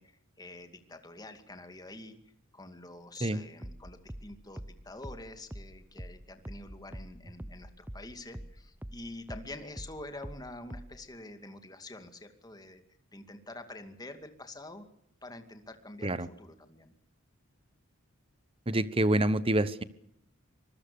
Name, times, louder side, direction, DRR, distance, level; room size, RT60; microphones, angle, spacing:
voice 1, 0.0-2.2 2.5-12.8 13.1-14.9 15.2-16.9, left 2 dB, 20° left, 7 dB, 2.4 m, -47 dB
sound 1, 3.6-8.6 8.8-11.1, equal, 10° right, 0.8 m, -44 dB
voice 2, 18.7-19.8, right 1 dB, 25° right, 15 dB, 1.1 m, -27 dB
25.0 x 21.0 x 7.0 m, 0.72 s
head